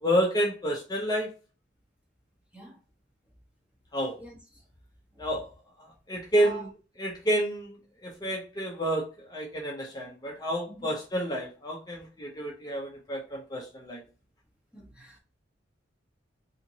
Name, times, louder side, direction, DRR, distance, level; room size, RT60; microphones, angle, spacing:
voice 1, 0.0-1.3 3.9-4.2 5.2-5.5 5.8-6.7 7.0-7.8 8.0-14.0, equal, 20° left, 0.7 m, -29 dB
voice 2, 14.7-15.2, right 3 dB, 5° right, 1.1 m, -43 dB
4.1 x 2.9 x 2.7 m
head